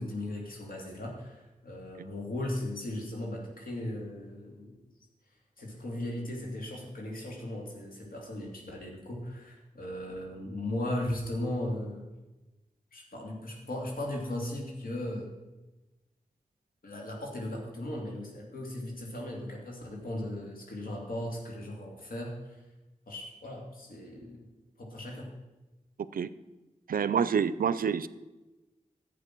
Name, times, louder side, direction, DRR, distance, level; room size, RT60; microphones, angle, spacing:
voice 1, 0.0-4.8 5.6-12.1 12.9-15.3 16.8-22.6 23.1-24.5 24.8-25.3, left 1 dB, 85° left, 0 dB, 2.8 m, -37 dB
voice 2, 26.9-28.1, right 7 dB, 85° right, 16 dB, 0.5 m, -27 dB
11.5 x 8.3 x 6.0 m, 1.1 s
wide cardioid pair, 65°, 14 cm